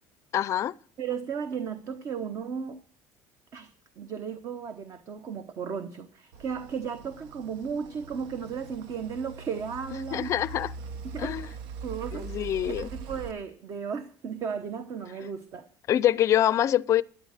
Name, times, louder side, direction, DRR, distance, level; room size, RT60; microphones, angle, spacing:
voice 1, 0.3-0.7 10.1-10.7 11.2-11.5 12.1-12.9 15.9-17.0, left 11 dB, 35° left, 0.5 m, -25 dB
voice 2, 1.0-2.8 3.5-3.7 4.0-10.3 11.0-11.4 11.8-15.7, right 6 dB, 40° right, 1.0 m, -35 dB
sound 1, 6.3-13.3, right 5 dB, 75° right, 1.1 m, -42 dB
12.0 x 9.7 x 6.5 m
cardioid pair, 150°, 8 cm